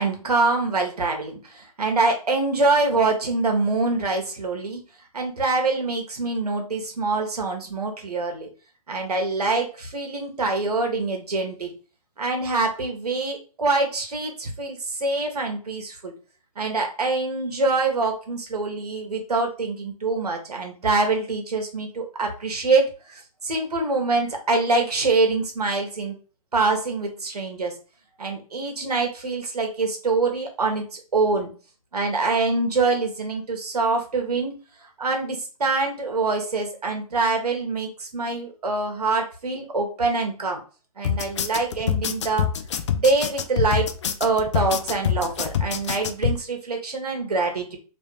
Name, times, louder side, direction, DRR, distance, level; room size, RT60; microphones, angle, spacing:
voice 1, 0.0-4.8 5.1-8.5 8.9-11.7 12.2-16.1 16.6-26.2 26.5-27.7 28.2-31.5 31.9-34.5 35.0-40.6 41.0-42.5 43.0-43.9 44.2-47.8, right 3 dB, 85° right, 3 dB, 1.3 m, -25 dB
sound 1, 41.0-46.4, left 8 dB, 50° left, 0.4 m, -25 dB
3.2 x 2.9 x 3.3 m, 0.36 s
hypercardioid pair, 150°, 19 cm